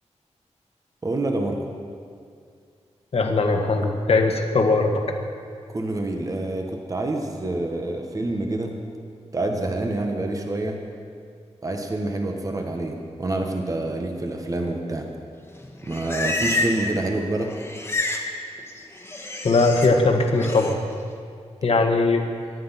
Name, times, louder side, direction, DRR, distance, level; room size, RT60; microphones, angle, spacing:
voice 1, 1.0-1.6 5.7-8.8 9.3-10.8 11.6-15.1 15.8-17.5, right 2 dB, 30° right, 3 dB, 1.4 m, -27 dB
voice 2, 3.1-4.9 19.4-20.8 21.6-22.2, left 3 dB, 55° left, 3 dB, 1.7 m, -20 dB
Livestock farm animals working animals, 15.6-17.0 17.2-18.3 18.6-19.9 20.3-20.7, left 2 dB, 20° left, 1.6 m, -29 dB
23.5 x 10.5 x 5.8 m, 2.3 s
wide cardioid pair, 155°, 12 cm